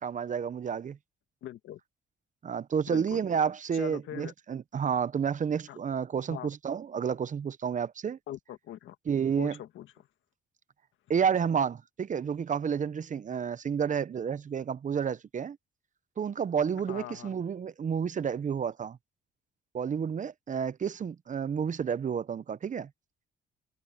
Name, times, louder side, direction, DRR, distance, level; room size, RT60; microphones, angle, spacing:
voice 1, 0.0-1.0 2.4-8.2 9.1-9.6 11.1-15.6 16.2-19.0 19.7-22.9, right 7 dB, 40° right, 0.7 m, -30 dB
voice 2, 1.4-1.8 2.9-3.2 3.7-4.3 5.7-5.8 6.3-6.5 8.3-9.0 9.4-10.1 16.9-17.3, left 12 dB, 80° left, 1.9 m, -42 dB
cardioid pair, 90°, 20 cm